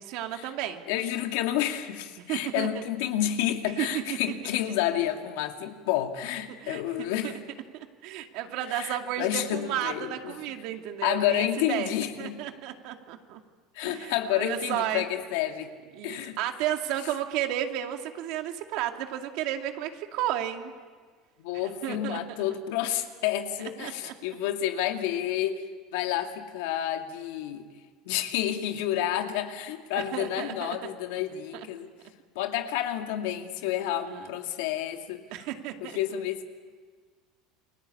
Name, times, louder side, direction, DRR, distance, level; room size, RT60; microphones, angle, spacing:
voice 1, 0.0-0.8 2.3-2.8 3.8-4.2 6.6-7.3 7.7-11.9 12.2-13.4 13.8-15.0 16.0-20.7 21.8-22.4 23.8-24.1 30.1-30.8 34.1-34.3 35.3-36.0, right 12 dB, 65° right, 5 dB, 2.4 m, -33 dB
voice 2, 0.9-7.4 8.7-10.4 11.0-12.4 13.7-15.7 16.0-16.4 21.4-27.6 28.1-31.9 32.3-35.2 35.8-36.5, left 12 dB, 85° left, 5 dB, 2.4 m, -30 dB
29.0 x 23.0 x 8.6 m, 1.5 s
cardioid pair, 150°, 0 cm